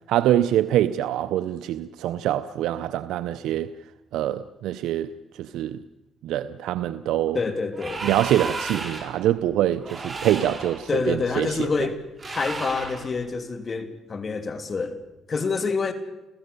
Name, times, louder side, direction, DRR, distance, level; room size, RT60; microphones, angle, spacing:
voice 1, 0.1-3.7 4.1-5.1 5.4-5.8 6.2-7.4 8.0-11.7, right 12 dB, 90° right, 0.6 m, -24 dB
voice 2, 7.3-8.0 10.9-12.0 12.3-15.0 15.3-15.9, left 4 dB, 40° left, 2.7 m, -27 dB
sound 1, 7.7-9.2 9.8-10.8 12.2-13.1, right 3 dB, 30° right, 4.5 m, -33 dB
30.0 x 15.5 x 6.8 m
cardioid pair, 90°, 0 cm